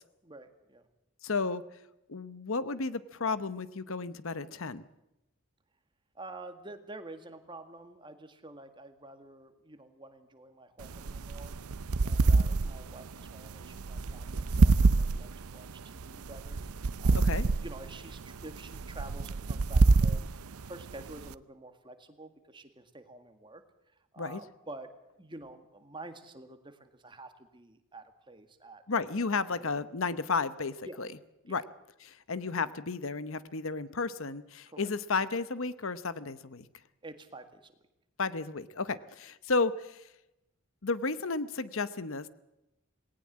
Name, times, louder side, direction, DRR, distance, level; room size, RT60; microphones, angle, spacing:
voice 1, 0.2-0.9 6.2-11.6 12.0-23.6 23.9-24.9 25.2-28.8 29.3-29.8 30.8-31.0 31.5-31.6 34.7-34.9 37.0-37.7 38.9-39.0, right 2 dB, 20° right, 8 dB, 1.9 m, -49 dB
voice 2, 1.2-1.6 2.1-4.8 17.2-17.5 24.2-24.4 28.9-31.1 31.5-31.6 32.0-36.7 38.2-40.0 40.8-42.3, left 4 dB, 65° left, 15 dB, 0.9 m, -33 dB
sound 1, 10.8-21.3, right 3 dB, 90° right, 0.7 m, -27 dB
19.0 x 18.5 x 7.5 m, 0.91 s
head